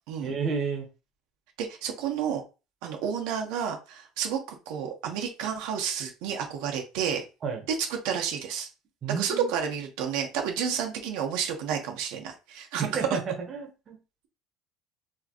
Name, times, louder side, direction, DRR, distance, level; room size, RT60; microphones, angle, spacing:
voice 1, 0.2-0.9 7.4-7.6 9.0-9.5 12.8-13.2 13.5-14.0, right 5 dB, 25° right, 1 dB, 1.1 m, -31 dB
voice 2, 1.6-2.4 2.8-7.2 7.8-8.7 9.2-13.0, right 7 dB, 75° right, 2 dB, 1.2 m, -31 dB
4.7 x 3.1 x 3.0 m, 0.30 s
cardioid pair, 170°, 0 cm